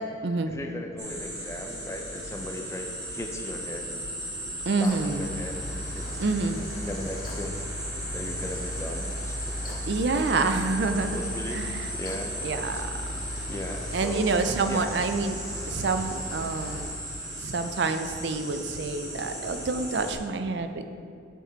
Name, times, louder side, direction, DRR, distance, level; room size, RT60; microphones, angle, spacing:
voice 1, 0.5-4.0 4.8-5.6 5.9-6.1 6.6-7.7 8.1-9.9 10.1-10.3 11.1-12.4 12.7-12.8 13.5-14.9, left 1 dB, 15° left, 4 dB, 0.5 m, -38 dB
sound 1, 1.0-20.1, right 1 dB, 20° right, 1.0 m, -37 dB
voice 2, 4.7-5.2 6.2-6.6 9.8-11.2 11.5-11.9 12.4-12.9 13.9-15.4 15.7-16.8 17.4-20.9, right 3 dB, 60° right, 8 dB, 0.4 m, -27 dB
Mechanical fan, 4.8-16.8, left 1 dB, 45° left, 0.9 m, -37 dB
7.6 x 5.2 x 3.9 m, 2.4 s
head